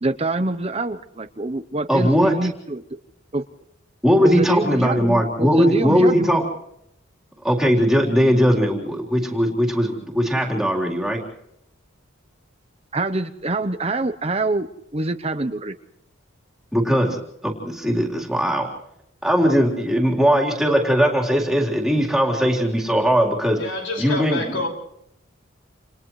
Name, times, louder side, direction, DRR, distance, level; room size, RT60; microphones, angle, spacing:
voice 1, 0.0-2.8 3.3-3.4 4.2-6.4 12.9-14.7 14.9-15.7, right 2 dB, 30° right, 0.8 m, -25 dB
voice 2, 1.9-2.3 4.0-6.4 7.4-11.2 16.7-17.2 17.4-18.7 19.2-23.6 24.0-24.6, equal, ahead, 3.8 m, -19 dB
voice 3, 23.6-24.7, left 2 dB, 65° left, 5.6 m, -27 dB
29.0 x 29.0 x 3.2 m
head